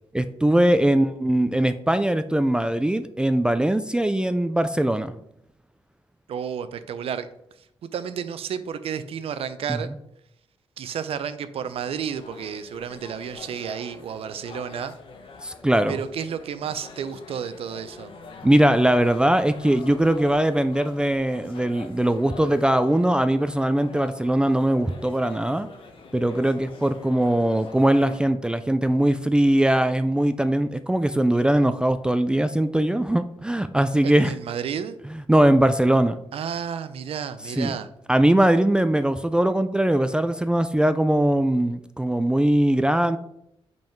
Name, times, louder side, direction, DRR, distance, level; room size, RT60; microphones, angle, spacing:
voice 1, 0.1-5.1 9.7-9.9 15.4-16.0 18.4-25.7 26.1-34.3 35.1-36.2 37.5-37.8 38.1-43.2, right 1 dB, 10° right, 10 dB, 0.3 m, -21 dB
voice 2, 6.3-7.3 7.8-9.9 10.8-14.9 15.9-18.1 34.0-35.0 36.3-37.9, right 8 dB, 75° right, 12 dB, 0.6 m, -31 dB
sound 1, 11.6-28.2, left 4 dB, 60° left, 1.1 m, -44 dB
5.4 x 5.4 x 4.5 m, 0.78 s
cardioid pair, 100°, 10 cm